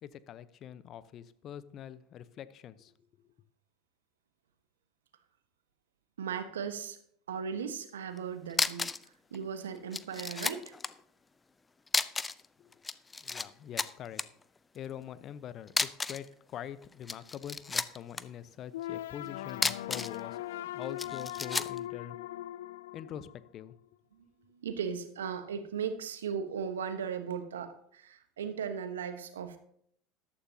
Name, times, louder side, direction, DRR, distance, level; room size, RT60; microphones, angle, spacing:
voice 1, 0.0-3.1 12.6-12.8 13.2-14.2 14.7-20.4 20.7-22.2 22.9-23.7, left 10 dB, 45° left, 15 dB, 0.8 m, -44 dB
voice 2, 6.2-7.0 7.3-10.7 24.1-29.6, right 7 dB, 80° right, 9 dB, 1.2 m, -37 dB
sound 1, 8.2-8.3 8.5-9.1 9.3-9.4 9.9-10.9 11.9-12.5 12.7-13.5 13.8-14.2 15.7-16.3 16.9-18.2 19.5-20.2 21.0-21.8, left 4 dB, 20° left, 0.6 m, -32 dB
sound 2, 18.7-23.7, left 14 dB, 75° left, 0.3 m, -40 dB
14.0 x 12.5 x 2.8 m, 0.66 s
hypercardioid pair, 75°, 0 cm